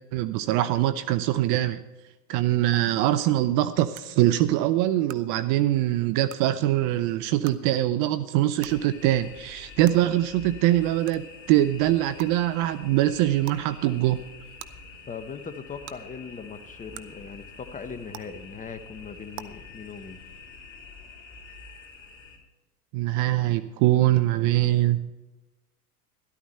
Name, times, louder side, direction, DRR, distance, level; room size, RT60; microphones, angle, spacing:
voice 1, 0.1-1.8 2.3-14.2 22.9-25.0, right 14 dB, 40° right, 14 dB, 0.6 m, -23 dB
sound 1, 2.7-2.8 3.9-4.0 5.1-5.2 6.3-6.4 7.4-7.6 8.6-8.7 9.8-9.9 11.1-11.2 12.2-12.3 13.4-13.6 14.6-14.7 15.9-16.0 16.9-17.0 18.1-18.2 19.3-19.4, right 14 dB, 55° right, 0.9 m, -40 dB
sound 2, 8.6-22.4, left 4 dB, 40° left, 3.5 m, -47 dB
voice 2, 15.1-20.2, left 5 dB, 15° left, 10 dB, 1.0 m, -39 dB
13.0 x 12.5 x 4.3 m, 1.1 s
hypercardioid pair, 95°, 48 cm